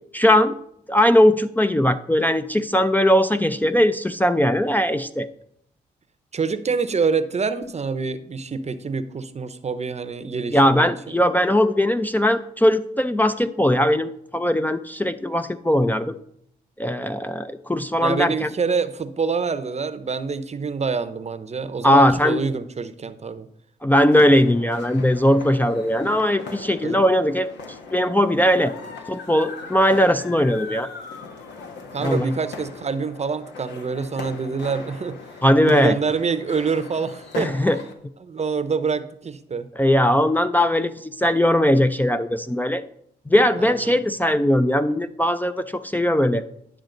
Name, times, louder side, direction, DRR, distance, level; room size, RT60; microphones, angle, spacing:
voice 1, 0.1-0.5 0.9-5.3 10.5-16.2 16.8-18.5 21.8-22.4 23.8-27.5 27.9-28.7 29.1-30.9 32.0-32.3 35.4-36.0 37.4-37.8 39.8-42.8 43.3-46.4, left 1 dB, 10° left, 9 dB, 0.5 m, -19 dB
voice 2, 6.3-11.2 18.0-23.5 26.5-26.6 26.8-27.0 31.9-35.2 35.6-37.5 38.2-39.7 43.6-43.9, right 5 dB, 35° right, 12 dB, 0.8 m, -26 dB
sound 1, 24.0-37.9, left 4 dB, 80° left, 1.1 m, -39 dB
10.5 x 6.3 x 3.9 m, 0.71 s
supercardioid pair, 55°, 18 cm